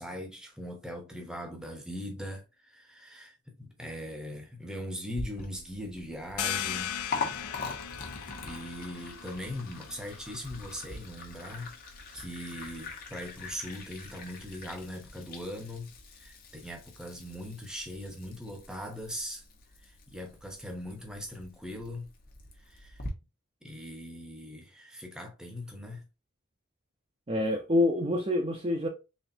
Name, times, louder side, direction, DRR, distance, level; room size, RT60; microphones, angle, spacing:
voice 1, 0.0-7.0 8.4-11.7 12.1-19.4 19.8-22.1 22.7-23.0 23.6-26.0, equal, 5° right, 0.9 m, -40 dB
Liquid, 5.1-23.1, left 3 dB, 40° left, 1.0 m, -43 dB
sound 1, 6.4-11.7, left 9 dB, 80° left, 0.5 m, -38 dB
voice 2, 27.3-28.9, left 2 dB, 25° right, 0.6 m, -26 dB
4.2 x 3.3 x 2.6 m
head